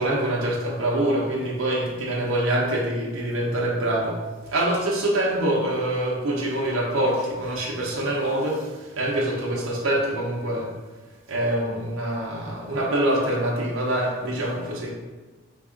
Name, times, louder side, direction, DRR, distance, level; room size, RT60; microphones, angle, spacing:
voice 1, 0.0-4.2 4.5-8.7 9.0-10.7 11.3-14.9, right 1 dB, 65° right, -3 dB, 0.6 m, -25 dB
3.5 x 2.3 x 3.6 m, 1.3 s
head